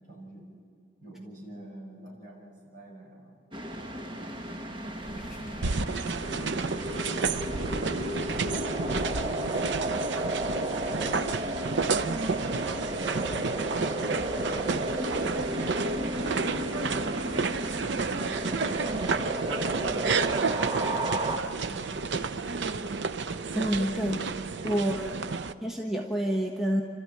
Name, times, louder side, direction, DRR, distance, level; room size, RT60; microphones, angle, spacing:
voice 1, 0.1-0.5 1.0-3.4 4.3-6.3 17.9-18.9 19.8-22.9 25.2-25.7, right 1 dB, 50° right, -3 dB, 6.4 m, -49 dB
sound 1, 3.5-21.4, right 1 dB, 30° right, 1.2 m, -33 dB
sound 2, 5.0-23.4, left 1 dB, 50° left, 4.6 m, -48 dB
sound 3, 5.6-25.5, right 4 dB, 80° right, 0.6 m, -31 dB
voice 2, 23.5-24.2 24.6-25.2 25.6-26.8, equal, ahead, -1 dB, 1.3 m, -28 dB
30.0 x 13.5 x 8.7 m, 2.1 s
head